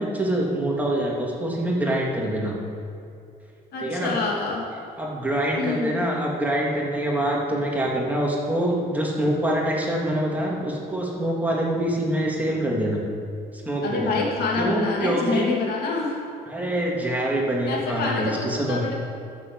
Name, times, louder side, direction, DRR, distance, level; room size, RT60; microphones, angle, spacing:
voice 1, 0.0-2.6 3.8-4.1 5.0-13.0 13.6-14.3 14.6-15.5 16.5-18.8, right 1 dB, 10° right, -3 dB, 2.8 m, -25 dB
voice 2, 3.7-4.6 5.5-6.0 13.8-16.2 17.7-18.9, left 4 dB, 70° left, -2 dB, 2.9 m, -27 dB
12.5 x 7.5 x 8.1 m, 2.5 s
cardioid pair, 110°, 17 cm